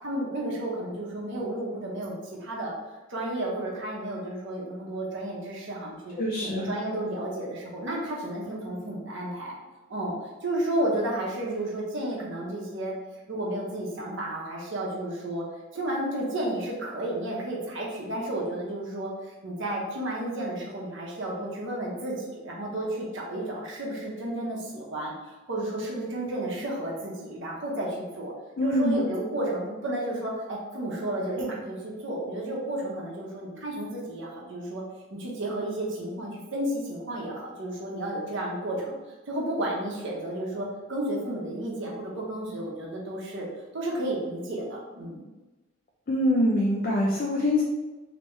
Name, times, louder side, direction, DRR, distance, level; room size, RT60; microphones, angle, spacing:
voice 1, 0.0-2.7 3.1-6.1 6.4-9.6 9.9-10.1 10.4-12.9 13.3-15.4 15.7-28.3 28.6-34.8 35.1-39.0 39.3-43.5 43.7-45.2, right 1 dB, 60° right, -3 dB, 0.9 m, -32 dB
voice 2, 6.2-6.7 28.6-29.1 46.1-47.6, left 1 dB, 45° left, -1 dB, 0.4 m, -24 dB
3.3 x 3.0 x 3.1 m, 1.2 s
head